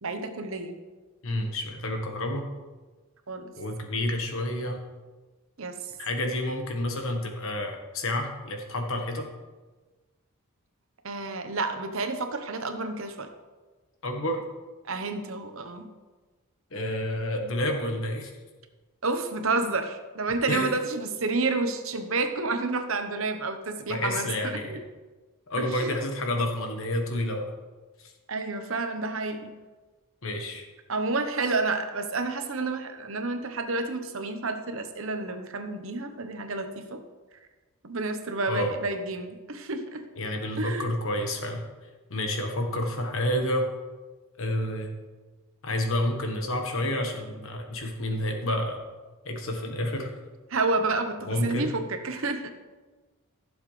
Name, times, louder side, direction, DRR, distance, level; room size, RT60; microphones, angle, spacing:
voice 1, 0.0-0.8 3.3-3.5 5.6-5.7 11.0-13.3 14.8-15.9 19.0-24.8 25.6-25.9 28.3-29.5 30.9-37.0 37.8-40.0 40.6-40.8 50.5-52.5, right 3 dB, 60° right, 7 dB, 1.0 m, -30 dB
voice 2, 1.2-2.4 3.5-4.8 6.0-9.3 14.0-14.4 16.7-18.3 20.5-20.7 23.9-24.8 25.5-27.5 30.2-30.7 38.5-38.7 40.2-41.6 42.1-43.7 44.4-44.9 45.6-48.8 49.2-50.1 51.3-51.7, left 1 dB, 60° left, 3 dB, 1.4 m, -29 dB
15.0 x 7.2 x 3.3 m, 1.3 s
head